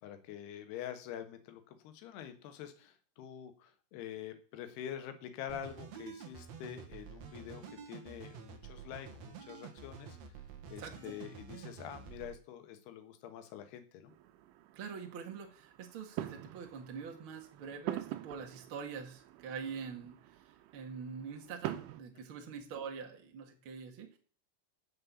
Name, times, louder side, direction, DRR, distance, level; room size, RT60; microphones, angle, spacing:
voice 1, 0.0-10.2 10.7-14.1, left 10 dB, 70° left, 8 dB, 3.2 m, -46 dB
sound 1, 5.5-12.3, right 6 dB, 70° right, 1.6 m, -49 dB
voice 2, 10.8-11.1 14.7-20.2 20.7-24.2, right 6 dB, 50° right, 2 dB, 1.6 m, -44 dB
sound 2, 14.1-22.0, right 14 dB, 85° right, 3.3 m, -45 dB
7.7 x 7.5 x 8.4 m, 0.43 s
omnidirectional pair, 5.4 m